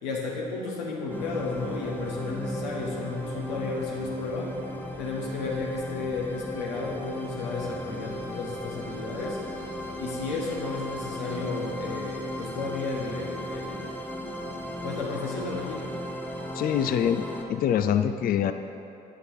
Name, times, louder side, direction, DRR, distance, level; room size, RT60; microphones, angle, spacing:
voice 1, 0.0-4.6 5.0-9.4 10.0-14.0 14.8-15.9, left 3 dB, 85° left, -2 dB, 1.3 m, -33 dB
sound 1, 1.1-17.4, equal, 10° left, 1.1 m, -36 dB
voice 2, 16.5-18.5, left 9 dB, 45° left, 9 dB, 0.4 m, -25 dB
9.0 x 6.4 x 4.7 m, 2.8 s
hypercardioid pair, 50°, 21 cm